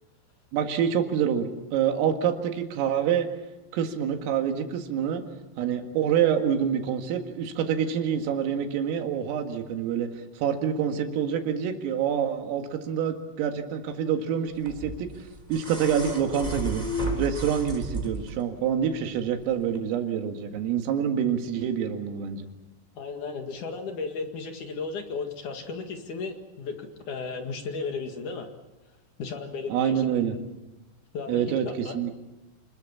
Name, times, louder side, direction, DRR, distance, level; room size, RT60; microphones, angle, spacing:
voice 1, 0.5-3.3 3.7-5.2 5.6-10.1 10.4-16.9 17.2-22.5 29.7-30.4 31.3-32.2, right 8 dB, 85° right, 5 dB, 4.6 m, -27 dB
sound 1, 14.7-18.4 19.7-19.8, right 1 dB, 10° right, 2.8 m, -33 dB
voice 2, 23.0-28.5 29.2-30.3 31.1-32.0, left 4 dB, 50° left, 5 dB, 2.6 m, -35 dB
28.5 x 21.0 x 7.2 m, 1.1 s
omnidirectional pair, 5.9 m